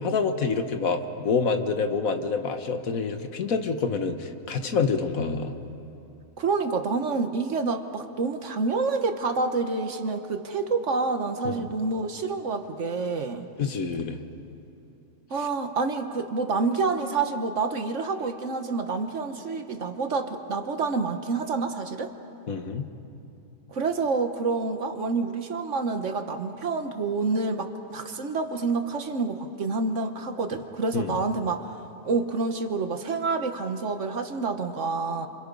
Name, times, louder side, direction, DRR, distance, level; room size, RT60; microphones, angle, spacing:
voice 1, 0.0-5.5 11.4-11.7 13.6-14.2 15.4-15.5 22.5-22.9 30.9-31.1, left 5 dB, 75° left, 7 dB, 1.6 m, -27 dB
voice 2, 6.4-13.5 15.3-22.1 23.7-31.6 32.0-35.3, right 4 dB, 60° right, 7 dB, 1.5 m, -28 dB
28.0 x 27.5 x 5.4 m, 2.7 s
omnidirectional pair, 1.5 m